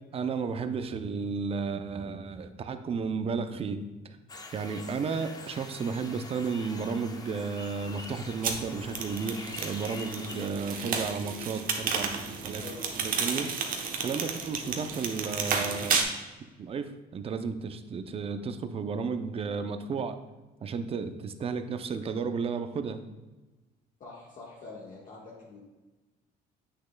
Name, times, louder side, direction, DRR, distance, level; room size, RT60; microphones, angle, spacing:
voice 1, 0.1-3.8 4.5-12.6 13.0-16.1 16.6-20.2 20.6-23.0, right 5 dB, 35° right, 9 dB, 0.5 m, -33 dB
sound 1, 4.3-10.5, left 3 dB, 20° left, 0.6 m, -45 dB
sound 2, 8.4-16.0, right 5 dB, 55° right, 0.9 m, -32 dB
voice 2, 24.0-25.6, left 3 dB, 50° left, -5 dB, 1.4 m, -45 dB
7.9 x 6.3 x 2.2 m, 1.2 s
cardioid pair, 110°, 17 cm